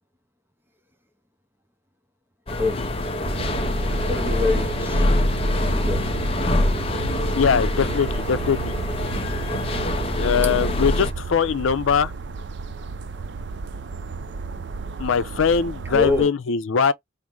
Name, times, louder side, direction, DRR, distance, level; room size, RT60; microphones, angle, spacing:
sound 1, 2.5-11.1, left 1 dB, 30° left, 0.6 m, -24 dB
sound 2, 3.2-16.2, right 4 dB, 65° right, 0.5 m, -33 dB
voice 1, 4.1-5.1 5.6-6.1 15.9-16.3, left 3 dB, 10° right, 0.6 m, -25 dB
voice 2, 7.3-8.7 10.2-12.1 15.0-16.9, left 6 dB, 90° left, 0.5 m, -21 dB
4.5 x 2.0 x 3.7 m
head